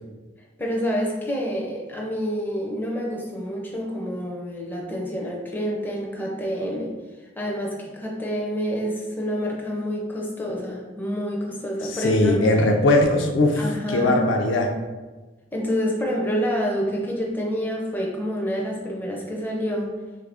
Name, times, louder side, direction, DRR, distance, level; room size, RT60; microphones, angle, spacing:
voice 1, 0.6-6.9 7.4-12.5 13.5-14.2 15.5-19.9, equal, 10° left, -2 dB, 0.4 m, -28 dB
voice 2, 12.0-14.8, left 2 dB, 70° left, 3 dB, 0.4 m, -20 dB
3.2 x 2.5 x 3.3 m, 1.2 s
head